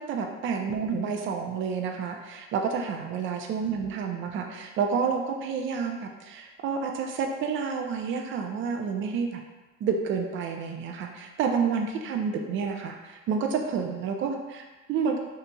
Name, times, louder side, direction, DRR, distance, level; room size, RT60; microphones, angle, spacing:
voice 1, 0.0-9.4 9.8-15.2, right 6 dB, 35° right, 3 dB, 0.4 m, -29 dB
2.7 x 2.6 x 2.2 m, 1.2 s
hypercardioid pair, 70°, 35 cm